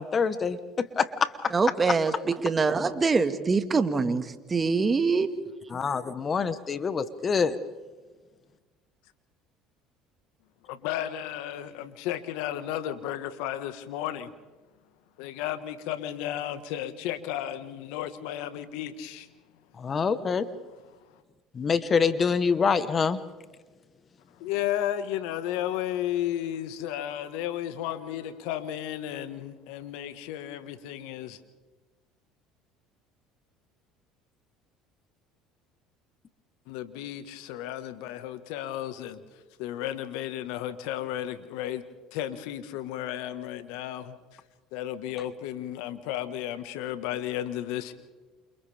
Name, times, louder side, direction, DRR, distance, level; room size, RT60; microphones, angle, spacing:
voice 1, 0.0-1.5 5.7-7.6 19.8-20.5 21.5-23.2, left 5 dB, 35° left, 12 dB, 1.3 m, -26 dB
voice 2, 1.5-5.3, right 4 dB, 25° right, 8 dB, 1.9 m, -24 dB
voice 3, 10.6-14.3 15.2-19.3 24.4-31.4 36.7-39.2 39.6-41.8 42.1-44.2 44.7-47.9, left 12 dB, 75° left, 10 dB, 1.6 m, -33 dB
29.0 x 28.5 x 3.6 m, 1.3 s
supercardioid pair, 85°, 0 cm